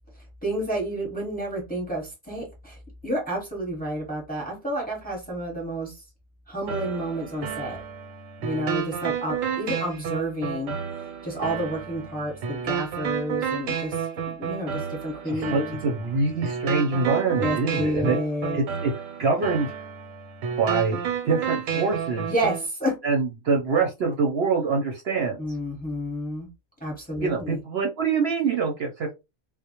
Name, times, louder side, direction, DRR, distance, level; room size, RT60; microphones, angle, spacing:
voice 1, 0.4-2.8 3.0-6.0 6.5-7.8 8.4-10.7 11.2-15.8 17.4-18.6 22.3-22.9 25.4-26.5 26.8-27.6, equal, 10° left, -2 dB, 0.8 m, -30 dB
sound 1, 6.7-22.7, right 7 dB, 85° right, 1.0 m, -31 dB
voice 2, 15.3-18.2 18.5-18.9 19.2-19.7 20.6-21.0 21.2-22.3 23.0-25.4 27.2-29.1, right 4 dB, 60° right, 1 dB, 0.7 m, -25 dB
2.1 x 2.0 x 2.8 m, 0.24 s
omnidirectional pair, 1.3 m